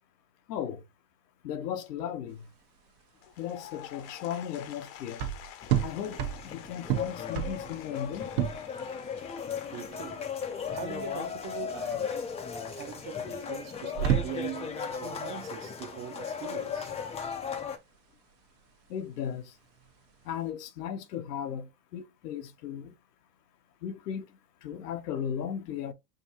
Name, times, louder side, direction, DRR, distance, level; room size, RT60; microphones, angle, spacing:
voice 1, 0.5-0.8 1.4-2.5 3.4-5.2 5.8-8.3 18.9-19.5 20.2-22.9 23.8-24.3 24.6-25.9, left 9 dB, 80° left, 0.9 m, -36 dB
sound 1, 2.3-20.5, right 10 dB, 65° right, 1.0 m, -35 dB
Applause / Crowd, 3.1-11.4, left 11 dB, 45° left, 0.7 m, -49 dB
sound 2, 5.6-17.8, left 7 dB, 15° left, 0.4 m, -36 dB
voice 2, 9.7-10.3 10.7-12.2 12.7-16.9, right 9 dB, 35° right, 0.6 m, -41 dB
5.1 x 2.6 x 2.8 m
hypercardioid pair, 105°, 47 cm